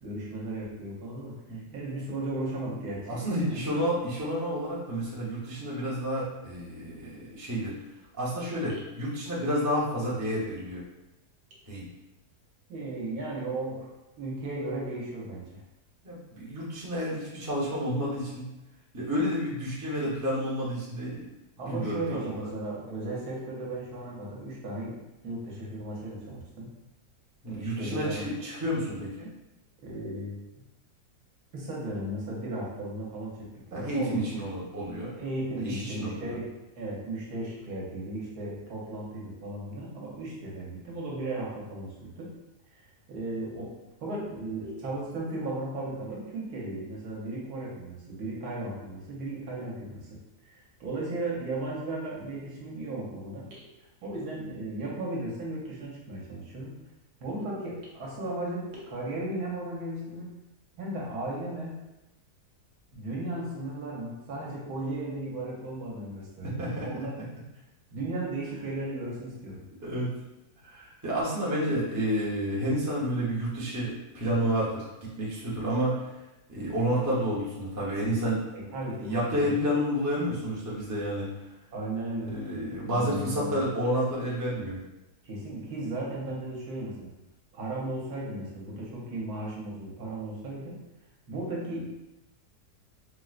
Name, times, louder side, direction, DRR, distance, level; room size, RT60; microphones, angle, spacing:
voice 1, 0.0-3.6 8.7-8.8 12.7-13.9 14.2-15.6 21.6-25.0 25.2-26.7 27.5-28.2 29.8-30.6 31.5-34.3 35.1-42.3 42.7-42.8 43.1-43.7 44.0-53.6 54.0-56.8 57.2-60.3 60.8-61.8 62.9-67.2 67.9-69.7 78.5-79.5 81.7-82.4 82.9-83.6 85.2-87.1 87.5-90.8 91.3-91.9, right 2 dB, 75° right, -4 dB, 1.3 m, -36 dB
voice 2, 3.1-7.7 8.2-10.8 11.7-11.8 16.0-18.5 18.9-21.2 21.7-22.4 27.4-29.3 33.7-35.2 35.6-36.4 66.4-67.1 69.8-70.1 70.6-76.0 76.5-78.4 79.0-81.3 82.2-84.8, equal, 25° right, -7 dB, 0.4 m, -30 dB
4.3 x 2.1 x 2.4 m, 0.97 s
omnidirectional pair, 1.7 m